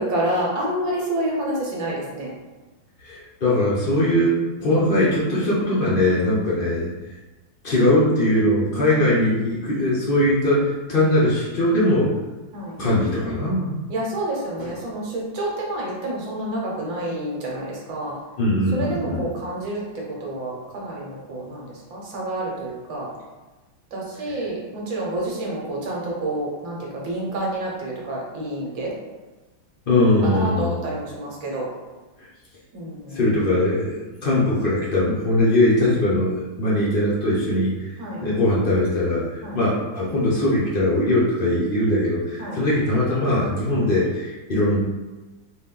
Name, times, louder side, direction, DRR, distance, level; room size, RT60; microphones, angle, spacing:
voice 1, 0.0-2.3 8.7-9.5 12.5-12.8 13.9-18.2 18.7-19.8 20.1-23.1 23.9-28.9 30.2-31.7 32.7-33.2 38.0-38.2 39.4-39.6 42.4-42.7 43.7-43.9, right 1 dB, 70° right, -3 dB, 1.7 m, -29 dB
voice 2, 3.0-4.3 4.6-6.9 7.6-12.1 12.8-13.7 14.6-14.7 18.4-19.3 24.3-24.4 29.9-30.8 32.2-32.3 33.1-37.9 38.2-44.8, left 1 dB, 50° left, -7 dB, 0.6 m, -21 dB
4.1 x 2.5 x 3.7 m, 1.2 s
omnidirectional pair, 2.2 m